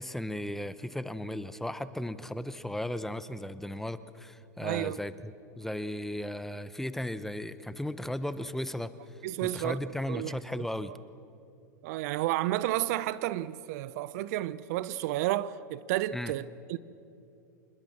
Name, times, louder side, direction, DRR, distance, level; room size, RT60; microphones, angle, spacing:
voice 1, 0.0-8.9 9.4-10.9 16.1-16.3, left 1 dB, 5° left, 0.9 m, -36 dB
voice 2, 4.6-5.0 9.2-9.8 10.1-10.7 11.8-16.8, right 15 dB, 55° right, 0.7 m, -31 dB
27.0 x 20.5 x 7.3 m
hypercardioid pair, 95°, 10 cm